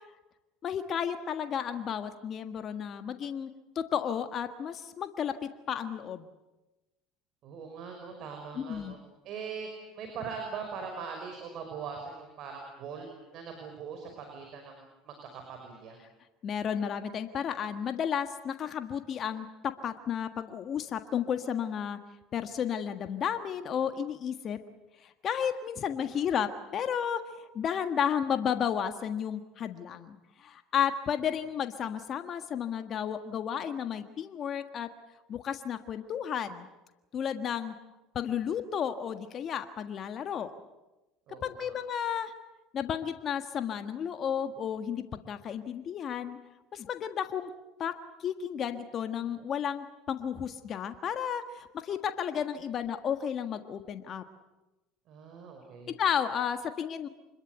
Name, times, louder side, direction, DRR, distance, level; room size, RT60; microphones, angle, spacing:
voice 1, 0.6-3.5 3.7-6.3 8.6-8.9 16.4-19.5 19.8-22.0 22.3-24.6 25.0-34.9 35.3-36.7 37.1-37.7 38.1-40.5 41.4-42.3 42.7-46.4 46.7-47.5 47.8-47.9 48.2-54.2 56.0-57.1, left 8 dB, 45° left, 8 dB, 1.5 m, -32 dB
voice 2, 7.4-9.0 9.2-13.1 13.3-16.0 41.3-41.8 55.1-56.0, right 5 dB, 55° right, 4 dB, 5.6 m, -41 dB
25.5 x 21.5 x 8.1 m, 1.1 s
hypercardioid pair, 85°, 0 cm